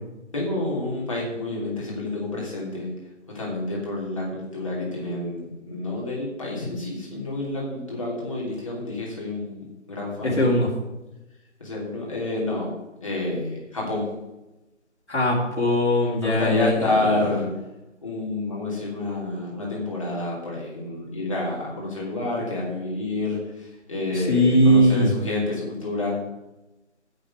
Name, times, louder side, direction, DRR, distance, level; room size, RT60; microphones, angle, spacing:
voice 1, 0.3-2.9 3.3-10.6 11.6-12.7 13.0-14.1 16.2-17.5 18.0-26.2, left 2 dB, 25° left, -5 dB, 3.1 m, -29 dB
voice 2, 10.2-10.7 15.1-16.9 24.1-25.1, equal, 60° left, -5 dB, 3.1 m, -20 dB
8.6 x 6.6 x 8.1 m, 1.0 s
figure-of-eight pair, 175°, 38 cm